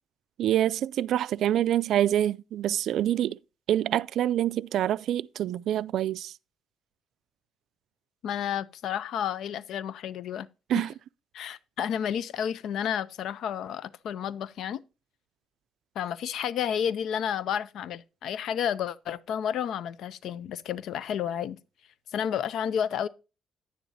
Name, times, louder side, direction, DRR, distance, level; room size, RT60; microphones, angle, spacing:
voice 1, 0.4-3.4 3.7-6.3 10.7-10.9, right 11 dB, 65° right, 0.3 m, -26 dB
voice 2, 8.2-10.5 10.7-10.9 11.3-14.8 16.0-21.6 22.1-23.1, left 9 dB, 65° left, 0.5 m, -31 dB
10.0 x 10.0 x 2.7 m
cardioid pair, 140°, 0 cm